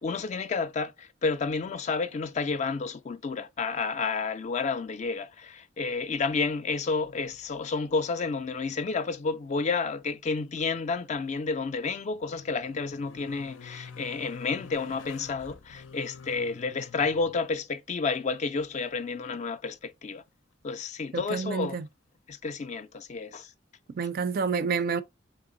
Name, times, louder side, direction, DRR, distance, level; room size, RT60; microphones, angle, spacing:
voice 1, 0.0-20.2 20.6-21.8 22.3-23.5, left 4 dB, 35° left, 0.4 m, -30 dB
sound 1, 6.6-7.6 7.9-8.7 9.0-9.1 11.5-17.4 20.3-20.4, left 4 dB, 85° left, 0.6 m, -48 dB
voice 2, 21.1-21.9 23.9-25.0, right 5 dB, 50° right, 0.4 m, -29 dB
3.6 x 3.1 x 3.8 m
head